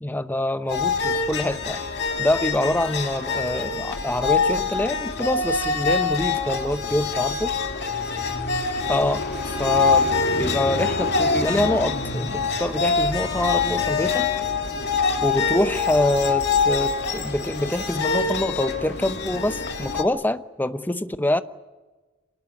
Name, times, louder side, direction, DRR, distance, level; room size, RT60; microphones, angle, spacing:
voice 1, 0.0-1.8 2.2-7.5 8.9-10.1 10.4-14.3 15.2-21.4, left 1 dB, 10° left, 11 dB, 0.9 m, -25 dB
sound 1, 0.7-20.0, left 4 dB, 55° left, 2.5 m, -25 dB
26.0 x 19.0 x 9.7 m, 1.3 s
head